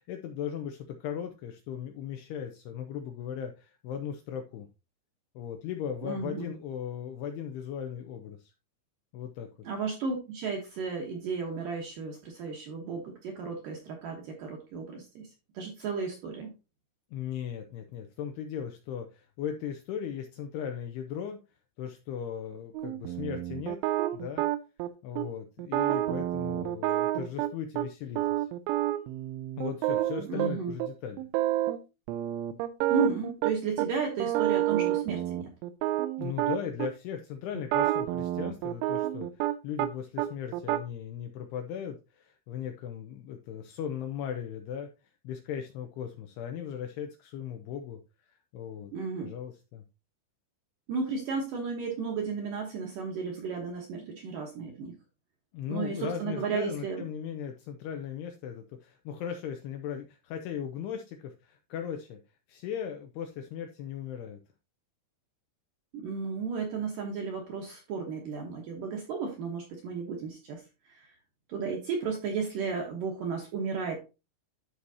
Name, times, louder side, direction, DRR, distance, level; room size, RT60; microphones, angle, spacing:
voice 1, 0.1-4.7 5.4-8.5 9.1-9.5 17.1-21.4 21.8-23.8 24.1-24.4 25.0-28.5 29.6-31.3 36.2-44.9 45.2-48.0 48.3-48.9 49.2-49.8 55.5-62.2 62.5-64.4, left 8 dB, 85° left, 5 dB, 2.4 m, -37 dB
voice 2, 6.0-6.5 9.7-15.3 15.5-16.5 30.3-30.7 32.9-35.4 48.9-49.3 50.9-54.9 55.7-57.0 65.9-70.6 70.9-71.1 71.5-74.0, right 5 dB, 65° right, 0 dB, 2.1 m, -33 dB
sound 1, 22.7-24.9 25.2-25.3 25.6-27.9 28.2-30.5 30.8-30.9 31.2-31.8 32.1-33.9 34.2-36.9 37.6-39.9 40.2-40.8, right 14 dB, 85° right, 3.1 m, -29 dB
13.0 x 4.7 x 2.8 m, 0.28 s
omnidirectional pair, 5.4 m